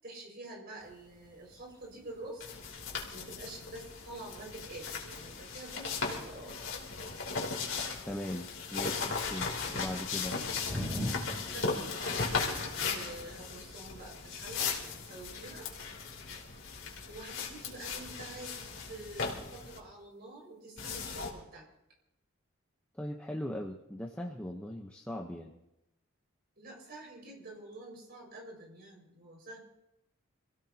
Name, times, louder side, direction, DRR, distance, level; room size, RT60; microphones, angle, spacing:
voice 1, 0.0-2.4 3.1-6.6 11.5-15.7 17.1-21.7 26.6-29.6, right 2 dB, 45° right, -1 dB, 5.6 m, -47 dB
sound 1, 0.8-16.6, equal, 20° right, 2.3 m, -47 dB
sound 2, 2.4-19.8 20.8-21.3, left 5 dB, 65° left, 3.2 m, -37 dB
voice 2, 8.0-10.4 22.9-25.5, left 1 dB, 5° left, 0 dB, 0.9 m, -39 dB
27.0 x 16.0 x 2.9 m, 0.90 s
head